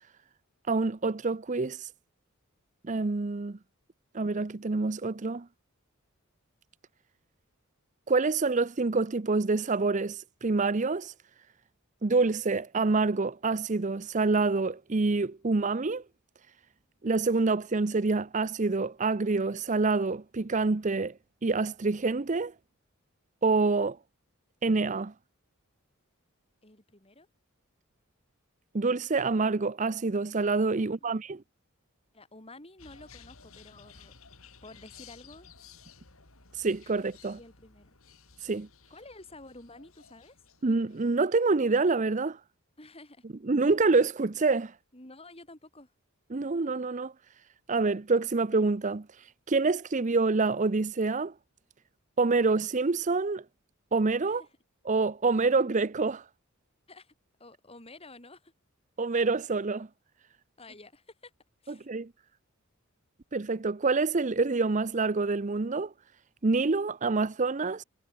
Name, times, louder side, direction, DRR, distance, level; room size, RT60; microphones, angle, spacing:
voice 1, 0.7-1.9 2.9-3.6 4.1-5.5 8.1-11.1 12.0-16.0 17.0-21.1 21.4-22.5 23.4-24.0 24.6-25.1 28.7-31.4 36.6-37.4 38.4-38.7 40.6-42.4 43.5-44.7 46.3-47.1 47.7-49.0 49.5-51.3 52.2-53.4 53.9-54.4 54.9-56.2 59.0-59.9 61.9-62.1 63.3-65.9 66.4-67.8, right 3 dB, 35° right, 0.6 m, -27 dB
voice 2, 26.6-27.3 30.8-31.1 32.1-34.1 34.6-35.5 37.2-37.9 38.9-40.4 42.8-43.2 44.9-45.9 54.2-54.5 56.9-57.1 57.4-58.5 60.6-61.3 61.6-61.9, left 2 dB, 25° left, 5.2 m, -51 dB
sound 1, 32.8-41.2, left 5 dB, 75° left, 3.6 m, -55 dB
head